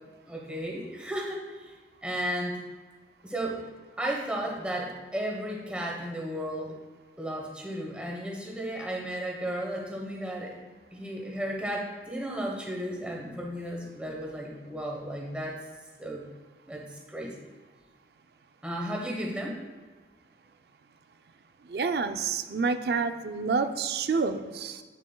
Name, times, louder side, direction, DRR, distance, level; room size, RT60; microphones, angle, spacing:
voice 1, 0.2-1.7 2.0-2.6 3.2-3.6 4.0-6.8 7.2-10.5 10.9-15.6 16.0-16.2 16.7-17.4 18.6-19.6, right 1 dB, 5° right, -2 dB, 1.1 m, -34 dB
voice 2, 21.7-24.8, right 4 dB, 65° right, 9 dB, 0.4 m, -28 dB
8.5 x 6.8 x 2.3 m, 1.4 s
head